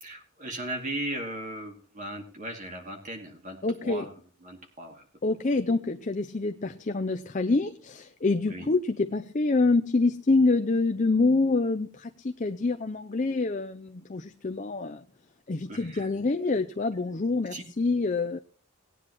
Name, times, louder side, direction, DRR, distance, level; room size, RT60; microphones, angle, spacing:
voice 1, 0.0-3.6 3.8-4.1 4.4-5.0 8.5-8.7 15.7-16.1 17.5-17.6, right 1 dB, 35° right, 3 dB, 2.5 m, -37 dB
voice 2, 3.6-4.1 5.2-15.0 15.5-18.4, left 3 dB, 35° left, 7 dB, 0.5 m, -26 dB
18.0 x 9.7 x 3.0 m, 0.42 s
head